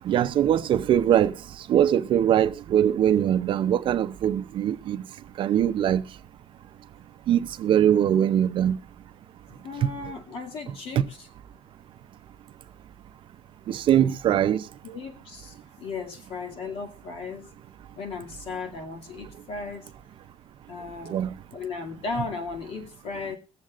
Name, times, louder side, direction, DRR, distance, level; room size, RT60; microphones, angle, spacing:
voice 1, 0.1-1.3 1.7-5.0 5.4-6.0 7.3-8.8 13.7-14.6 21.1-21.3, right 10 dB, 45° right, 0.6 m, -22 dB
voice 2, 9.5-11.3 14.3-17.5 18.0-19.9 20.7-23.4, left 4 dB, 55° left, 2.3 m, -36 dB
22.0 x 7.4 x 2.4 m
cardioid pair, 170°, 12 cm